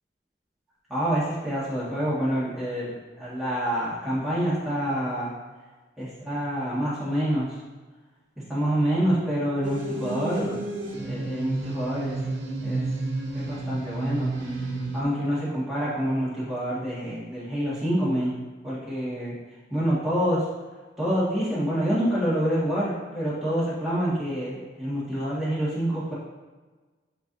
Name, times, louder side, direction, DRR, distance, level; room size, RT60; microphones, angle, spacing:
voice 1, 0.9-5.3 6.0-7.5 8.5-10.6 11.0-12.2 12.6-12.9 13.3-14.5 14.9-18.3 18.6-19.4 19.7-20.4 21.0-26.1, equal, ahead, -10 dB, 1.8 m, -27 dB
sound 1, 9.6-15.0, right 2 dB, 80° right, 0.9 m, -31 dB
8.0 x 4.8 x 2.7 m, 1.3 s
head